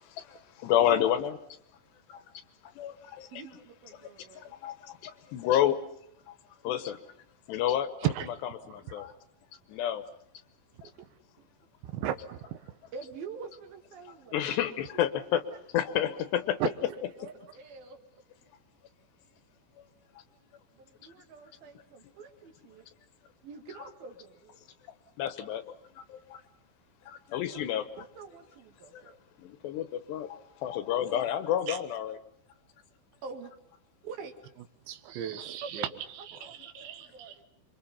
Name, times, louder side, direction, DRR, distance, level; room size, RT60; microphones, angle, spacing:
voice 1, 0.0-1.4 2.1-2.2 2.8-3.3 4.0-4.1 4.3-5.8 6.3-6.4 6.6-7.0 7.5-7.9 8.7-9.1 9.7-10.0 14.3-15.4 15.7-16.6 25.2-26.4 27.1-27.9 28.9-29.0 29.4-32.2, left 11 dB, 70° left, 3.1 m, -30 dB
voice 2, 3.3-4.5 10.7-10.9 11.4-11.5 12.9-14.6 16.6-16.7 17.2-18.0 20.8-22.9 23.4-24.7 27.5-27.6 28.0-29.2 33.2-33.5 34.0-34.4 35.6-35.7 36.2-37.4, right 5 dB, 55° right, 3.6 m, -46 dB
voice 3, 11.8-12.8 16.6-16.7 31.7-31.8 34.9-37.4, right 11 dB, 75° right, 3.5 m, -35 dB
28.5 x 24.5 x 5.7 m
omnidirectional pair, 5.4 m